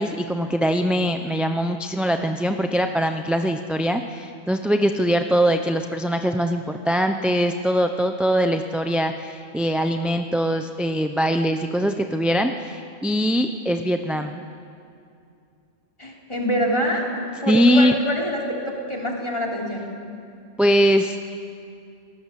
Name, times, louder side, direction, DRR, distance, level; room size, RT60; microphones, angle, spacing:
voice 1, 0.0-14.4 17.5-17.9 20.6-21.2, equal, ahead, 5 dB, 0.6 m, -22 dB
voice 2, 16.0-17.1 17.4-19.9, equal, 25° left, -2 dB, 3.5 m, -25 dB
29.5 x 19.0 x 7.6 m, 2.5 s
omnidirectional pair, 1.3 m